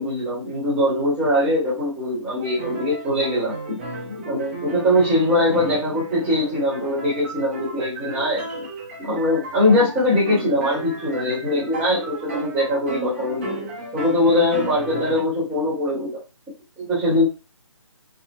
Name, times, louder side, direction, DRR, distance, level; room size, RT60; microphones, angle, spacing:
voice 1, 0.0-3.8 4.1-8.7 9.0-13.7 13.9-16.2 16.8-17.2, left 1 dB, 5° right, -7 dB, 1.1 m, -22 dB
sound 1, 2.4-15.2, right 3 dB, 25° right, 0.7 m, -33 dB
5.0 x 2.1 x 2.3 m, 0.29 s
figure-of-eight pair, 150°, 16 cm